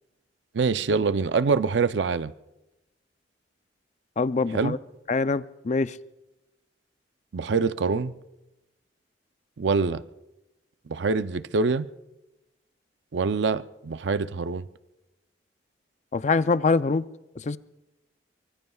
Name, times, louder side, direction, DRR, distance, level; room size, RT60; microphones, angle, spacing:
voice 1, 0.5-2.3 4.5-4.8 7.3-8.1 9.6-10.0 10.9-11.9 13.1-14.7, right 4 dB, 70° right, 0.5 m, -25 dB
voice 2, 4.2-4.8 5.1-5.9 16.1-17.1 17.4-17.6, left 4 dB, 40° left, 0.5 m, -24 dB
24.0 x 23.5 x 2.3 m
head